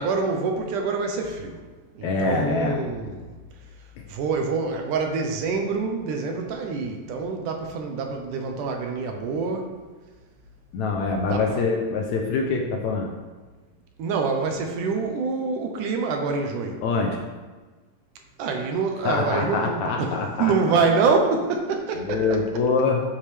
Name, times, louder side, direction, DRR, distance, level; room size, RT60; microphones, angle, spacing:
voice 1, 0.0-1.6 2.0-3.3 4.1-9.7 11.3-11.7 14.0-16.8 18.4-20.1 20.4-22.2, right 4 dB, 75° right, 3 dB, 2.3 m, -26 dB
voice 2, 2.0-2.8 10.7-13.1 16.8-17.2 19.0-20.5 22.0-23.0, left 4 dB, 70° left, 1 dB, 1.9 m, -24 dB
13.0 x 6.7 x 3.3 m, 1.3 s
omnidirectional pair, 3.9 m